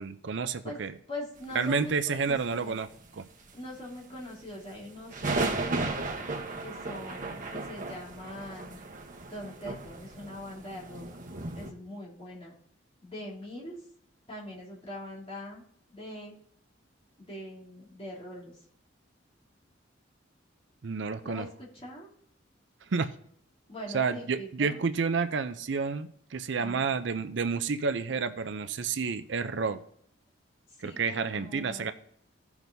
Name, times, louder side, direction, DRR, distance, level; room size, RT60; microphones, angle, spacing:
voice 1, 0.0-0.9 1.5-2.9 3.1-3.2 20.8-21.5 22.9-23.1 23.9-29.8 30.8-31.9, right 5 dB, 65° right, 11 dB, 0.5 m, -30 dB
voice 2, 1.1-2.8 3.5-5.8 6.6-8.8 9.3-11.0 11.5-12.5 13.0-13.8 14.3-15.6 15.9-16.3 17.2-18.6 21.2-22.1 23.7-24.8 26.6-26.9 30.8-31.9, left 1 dB, 30° left, -7 dB, 3.0 m, -42 dB
sound 1, 1.9-3.2 3.4-3.9 4.2-4.3 4.5-11.7, right 2 dB, 40° right, 1.0 m, -35 dB
16.5 x 5.9 x 2.7 m, 0.67 s
head